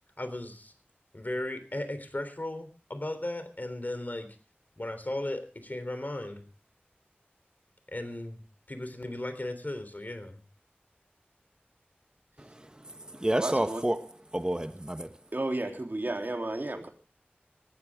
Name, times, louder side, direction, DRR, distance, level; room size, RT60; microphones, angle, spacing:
voice 1, 0.2-0.7 1.1-4.3 4.8-6.4 7.9-8.4 8.7-10.4, left 1 dB, 50° left, 3.5 m, -36 dB
voice 2, 12.4-14.0 14.3-15.1, right 1 dB, 20° right, 1.1 m, -30 dB
voice 3, 13.4-13.8 15.3-16.9, right 2 dB, 55° right, 3.5 m, -32 dB
20.0 x 14.5 x 3.7 m
wide cardioid pair, 40°, 4 cm